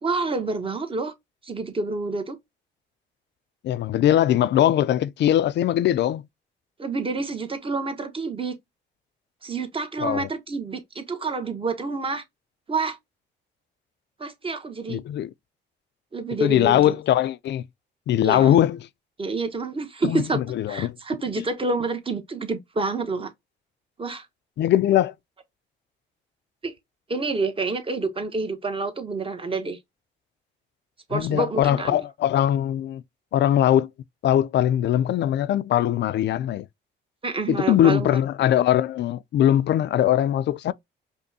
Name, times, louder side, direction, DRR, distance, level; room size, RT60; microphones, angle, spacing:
voice 1, 0.0-1.1 1.4-2.4 6.8-8.6 9.4-12.2 12.7-13.0 14.2-15.0 16.1-16.9 18.2-18.5 19.2-20.4 20.7-23.3 24.0-24.3 26.6-26.7 27.1-29.8 31.1-32.0 37.2-38.2, right 3 dB, 25° right, 0.9 m, -28 dB
voice 2, 3.6-6.2 10.0-10.3 14.9-15.3 16.4-17.6 18.1-18.8 20.1-21.0 21.4-21.5 24.6-25.1 31.1-33.0 33.3-33.9 34.2-36.7 37.5-40.7, left 11 dB, 60° left, 0.4 m, -21 dB
5.2 x 2.1 x 2.7 m
cardioid pair, 90°, 20 cm